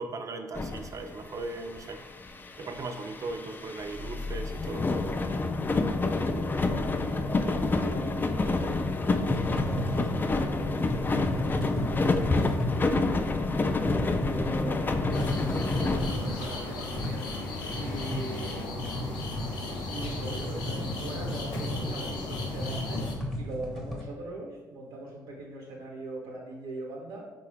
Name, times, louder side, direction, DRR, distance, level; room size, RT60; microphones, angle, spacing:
voice 1, 0.0-2.0 2.6-4.9, right 3 dB, 45° right, 6 dB, 0.4 m, -38 dB
sound 1, 0.5-1.3 1.7-16.6 17.1-17.2 17.5-18.6, left 3 dB, 25° left, 0.3 m, -29 dB
voice 2, 5.9-18.9 19.7-27.3, right 2 dB, 90° right, -2 dB, 0.8 m, -42 dB
sound 2, 9.2-24.0, left 1 dB, 5° left, 0.7 m, -35 dB
sound 3, 15.1-23.1, left 2 dB, 85° left, 0.5 m, -36 dB
3.7 x 2.3 x 3.4 m, 1.1 s
supercardioid pair, 65°, 8 cm